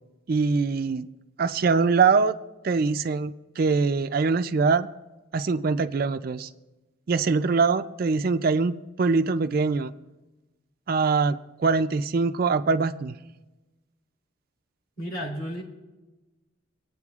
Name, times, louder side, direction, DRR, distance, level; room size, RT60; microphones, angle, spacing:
voice 1, 0.3-1.1 1.4-2.4 2.6-4.9 5.3-6.5 7.1-9.9 10.9-13.1, right 4 dB, 45° right, 10 dB, 0.4 m, -23 dB
voice 2, 15.0-15.6, equal, 50° left, -2 dB, 3.1 m, -32 dB
25.0 x 9.0 x 2.4 m, 1.1 s
head